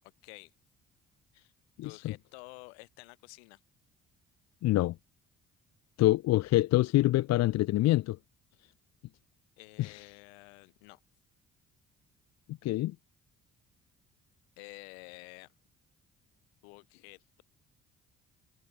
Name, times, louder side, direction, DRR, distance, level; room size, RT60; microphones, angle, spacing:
voice 1, 0.2-0.5 1.8-3.6 9.6-11.0 14.6-15.5 16.6-17.4, left 31 dB, 75° left, 3.9 m, -50 dB
voice 2, 1.8-2.1 4.6-4.9 6.0-8.2 9.8-10.0 12.5-12.9, left 16 dB, 55° left, 0.7 m, -26 dB
hypercardioid pair, 50°, 32 cm